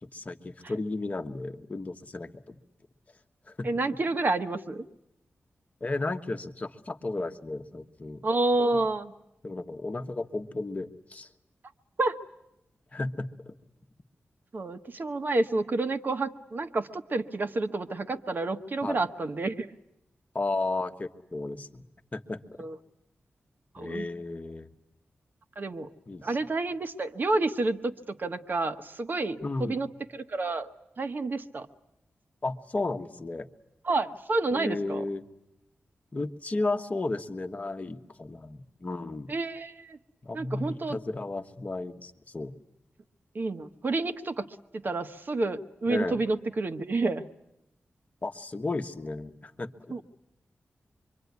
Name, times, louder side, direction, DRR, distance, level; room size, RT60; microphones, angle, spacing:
voice 1, 0.0-2.6 3.5-4.0 5.8-8.2 9.4-11.3 12.9-13.5 18.8-19.0 20.3-21.8 22.1-22.6 23.8-24.7 26.1-26.4 29.4-29.8 32.4-33.5 34.5-35.2 36.1-39.3 40.2-42.5 45.9-46.2 48.2-49.9, left 2 dB, 35° left, 6 dB, 1.3 m, -34 dB
voice 2, 3.6-4.8 8.2-9.1 12.0-12.2 14.5-19.7 22.6-22.7 23.7-24.1 25.6-25.9 26.2-29.9 30.1-30.7 31.0-31.7 33.8-35.0 39.3-40.0 40.3-41.0 43.3-47.3 49.9-50.0, right 2 dB, 50° right, 8 dB, 1.3 m, -29 dB
25.5 x 24.0 x 9.5 m, 0.85 s
wide cardioid pair, 105°, 4 cm